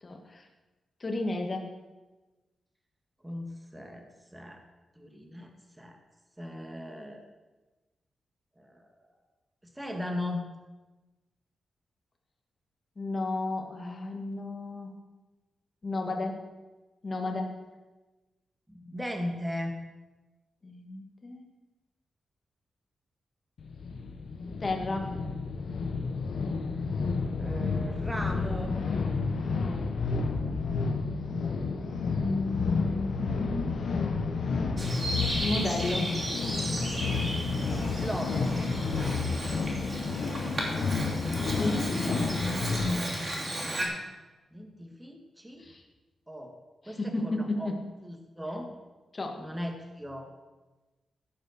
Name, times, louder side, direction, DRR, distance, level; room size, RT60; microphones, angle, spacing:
voice 1, 0.0-0.5 1.0-1.7 13.0-15.0 15.8-16.4 17.0-17.6 20.6-21.4 24.6-25.1 32.1-33.8 35.4-36.1 41.5-42.2 45.6-45.8 46.9-47.8 49.1-49.4, left 2 dB, 30° left, 3 dB, 1.9 m, -33 dB
voice 2, 3.2-4.6 5.0-5.5 5.8-6.0 6.4-7.2 8.6-8.9 9.6-10.4 18.7-19.8 27.3-28.8 38.0-38.5 44.5-45.7 46.3-46.6 46.8-47.7 48.0-48.7 49.4-50.3, left 1 dB, 10° right, 3 dB, 1.7 m, -37 dB
sound 1, 23.6-43.0, left 4 dB, 70° left, 1.2 m, -30 dB
Bird vocalization bird call bird song, 34.8-43.9, right 1 dB, 30° right, 3.0 m, -35 dB
15.5 x 5.6 x 6.5 m, 1.1 s
wide cardioid pair, 130°, 0 cm